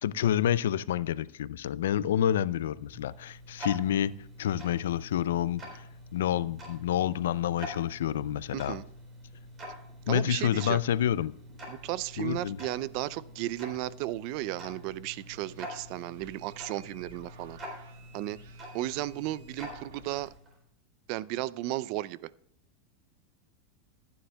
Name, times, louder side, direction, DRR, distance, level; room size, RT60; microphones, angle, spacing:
voice 1, 0.0-4.1 4.4-5.9 6.1-8.8 10.1-11.3 12.2-12.6, left 10 dB, 85° left, 0.4 m, -28 dB
Tick-tock, 2.3-20.6, equal, 25° right, 3.8 m, -46 dB
voice 2, 8.5-8.8 10.1-10.8 11.7-17.6 18.1-18.4 18.7-20.3 21.1-22.3, right 16 dB, 55° right, 0.4 m, -34 dB
sound 1, 15.0-20.2, right 6 dB, 80° right, 1.8 m, -58 dB
14.5 x 9.4 x 2.2 m
supercardioid pair, 130°, 0 cm